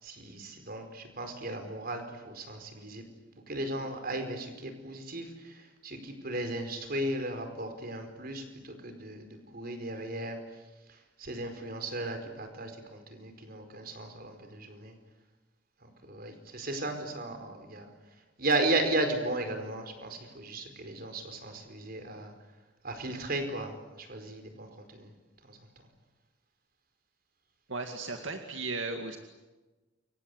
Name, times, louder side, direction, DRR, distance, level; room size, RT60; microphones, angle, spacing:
voice 1, 0.0-3.0 3.5-10.4 10.9-14.9 15.8-17.9 18.4-22.3 22.8-25.1 25.4-25.6, right 2 dB, 50° right, 7 dB, 4.8 m, -35 dB
voice 2, 27.7-29.2, right 3 dB, 80° right, 4 dB, 2.2 m, -36 dB
29.0 x 24.5 x 8.1 m, 1.2 s
head